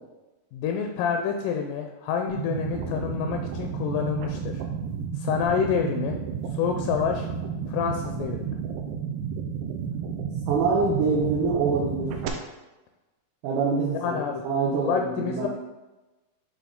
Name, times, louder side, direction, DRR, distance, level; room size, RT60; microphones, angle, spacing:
voice 1, 0.5-4.6 5.2-6.2 6.5-7.3 7.7-8.5 13.9-14.4 14.8-15.5, left 7 dB, 80° left, 4 dB, 2.0 m, -28 dB
sound 1, 2.3-12.3, right 7 dB, 90° right, 2.5 m, -32 dB
voice 2, 10.5-12.1 13.4-15.5, right 4 dB, 75° right, -5 dB, 2.3 m, -25 dB
8.4 x 3.5 x 3.7 m, 1.1 s
omnidirectional pair, 4.0 m